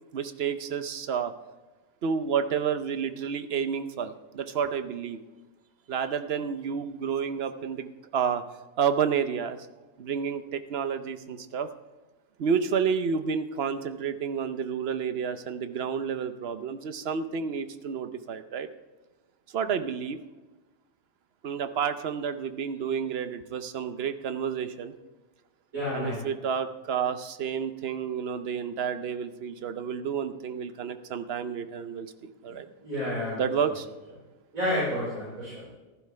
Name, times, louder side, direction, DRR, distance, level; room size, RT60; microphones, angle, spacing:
voice 1, 0.1-1.3 2.0-5.2 5.9-8.4 8.8-9.6 10.0-11.7 12.4-18.7 19.5-20.2 21.4-24.9 25.9-32.7 33.4-33.9, right 7 dB, 55° right, 10 dB, 0.8 m, -30 dB
voice 2, 25.7-26.2 32.5-32.6 32.8-33.7 34.5-35.7, left 1 dB, 80° right, -8 dB, 5.1 m, -30 dB
14.5 x 11.5 x 3.3 m, 1.2 s
omnidirectional pair, 1.5 m